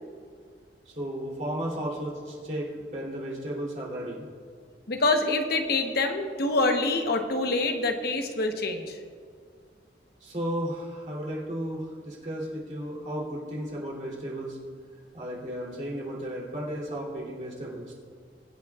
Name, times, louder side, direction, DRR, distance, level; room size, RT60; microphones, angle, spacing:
voice 1, 0.9-4.3 10.2-14.6 15.1-17.9, right 1 dB, 45° right, -5 dB, 3.1 m, -34 dB
voice 2, 4.9-9.0, left 2 dB, 60° left, 5 dB, 1.0 m, -26 dB
23.0 x 8.3 x 2.4 m, 2.1 s
head